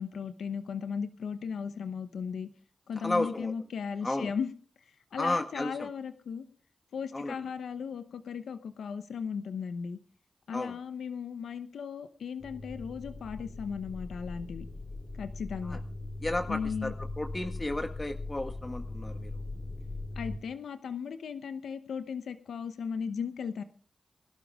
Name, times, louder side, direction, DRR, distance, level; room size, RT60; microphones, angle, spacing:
voice 1, 0.0-2.5 2.9-4.5 5.1-6.5 6.9-10.0 10.5-14.6 15.1-15.8 16.5-16.9 20.2-23.6, left 6 dB, 90° left, 9 dB, 0.9 m, -36 dB
voice 2, 2.9-3.5 4.0-4.3 5.2-5.9 7.1-7.3 10.5-10.7 15.6-15.8 16.2-19.3, left 2 dB, 30° left, 5 dB, 1.6 m, -33 dB
sound 1, 12.4-20.4, left 2 dB, 70° left, 3.1 m, -40 dB
23.0 x 12.0 x 3.6 m, 0.43 s
cardioid pair, 40°, 0 cm